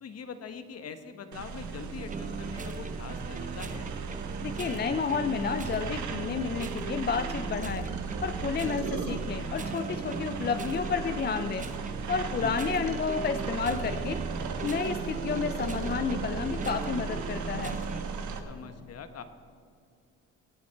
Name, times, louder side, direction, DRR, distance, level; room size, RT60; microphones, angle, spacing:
voice 1, 0.0-3.9 12.2-12.6 18.4-19.2, left 6 dB, 55° left, 9 dB, 1.2 m, -43 dB
sound 1, 1.3-18.4, right 5 dB, 70° right, 1.3 m, -37 dB
sound 2, 2.0-18.0, right 4 dB, 25° right, 0.8 m, -38 dB
voice 2, 4.4-7.9 8.2-11.7 12.1-14.2 14.6-17.8, left 5 dB, 35° left, 8 dB, 0.5 m, -31 dB
18.0 x 9.4 x 4.5 m, 2.3 s
cardioid pair, 90°, 30 cm